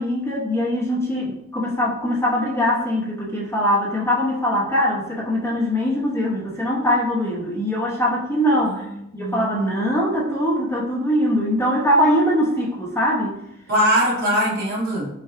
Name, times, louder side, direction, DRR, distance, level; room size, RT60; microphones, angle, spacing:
voice 1, 0.0-8.9 9.1-13.4, equal, 15° left, -5 dB, 0.9 m, -22 dB
voice 2, 8.8-9.4 13.7-15.1, equal, 55° right, -4 dB, 1.5 m, -21 dB
5.7 x 2.3 x 3.5 m, 0.83 s
head